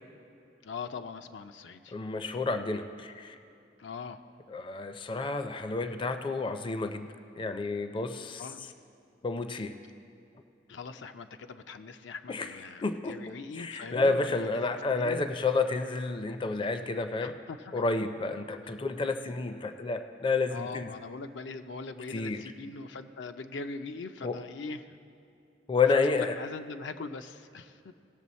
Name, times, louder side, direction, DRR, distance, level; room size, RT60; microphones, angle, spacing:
voice 1, 0.6-2.0 3.8-4.2 8.4-8.6 10.7-15.3 17.2-17.8 20.5-25.0 25.9-27.9, left 4 dB, 80° left, 8 dB, 0.5 m, -41 dB
voice 2, 1.9-3.4 4.5-7.1 7.3-8.4 9.2-9.7 12.3-12.5 12.8-17.3 17.7-20.9 22.1-22.4 24.2-24.4 25.7-26.3, left 3 dB, 30° left, 8 dB, 0.4 m, -30 dB
18.0 x 6.9 x 4.2 m, 2.6 s
head